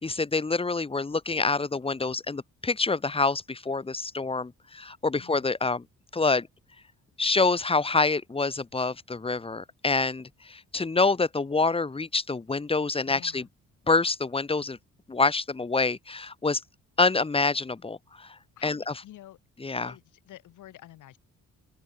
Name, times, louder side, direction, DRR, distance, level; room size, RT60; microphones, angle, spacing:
voice 1, 0.0-5.8 6.1-6.5 7.2-13.5 13.9-14.8 15.1-16.6 17.0-19.0 19.6-19.9, left 3 dB, 20° left, 1.2 m, -26 dB
voice 2, 5.2-5.5 13.0-13.5 18.6-19.4 19.8-21.2, left 14 dB, 80° left, 5.1 m, -49 dB
open air
cardioid pair, 90°, 30 cm